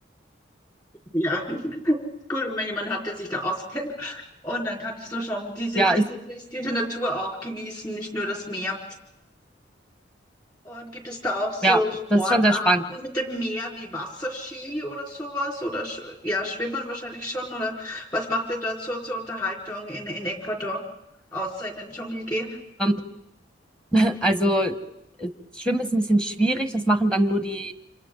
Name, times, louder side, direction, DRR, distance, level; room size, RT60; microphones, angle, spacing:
voice 1, 1.1-2.0 2.3-8.8 10.6-20.8 21.3-22.6, left 1 dB, 20° left, 0 dB, 4.3 m, -30 dB
voice 2, 12.1-12.8 22.8-23.0 23.9-24.7 25.2-25.3 25.6-27.7, right 1 dB, 5° left, 8 dB, 1.0 m, -21 dB
29.5 x 27.5 x 3.9 m, 0.81 s
head